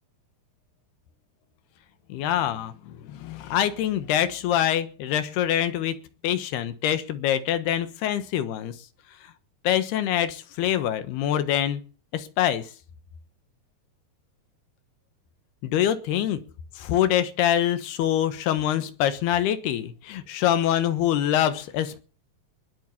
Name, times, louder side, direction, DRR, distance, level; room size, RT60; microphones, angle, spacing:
voice 1, 2.1-6.0 6.2-8.8 9.7-11.8 12.1-12.7 15.6-16.4 16.8-22.0, left 11 dB, 80° left, 11 dB, 3.3 m, -25 dB
20.5 x 8.0 x 7.1 m, 0.39 s
omnidirectional pair, 4.6 m